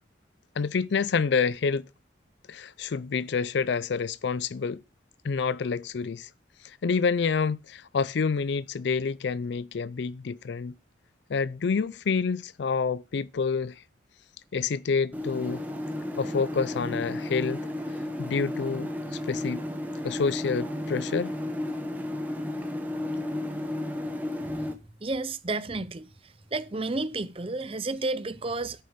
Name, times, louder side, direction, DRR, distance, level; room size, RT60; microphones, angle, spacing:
voice 1, 0.6-1.9 2.5-4.8 5.2-6.3 6.6-10.7 11.3-13.8 14.5-15.6 16.2-17.6 18.2-19.6 20.0-21.3, left 5 dB, 65° left, 0.4 m, -28 dB
sound 1, 15.1-24.7, left 1 dB, 10° right, 1.2 m, -33 dB
voice 2, 25.0-26.1 26.5-28.8, right 3 dB, 30° right, 0.6 m, -31 dB
11.0 x 6.8 x 5.1 m
head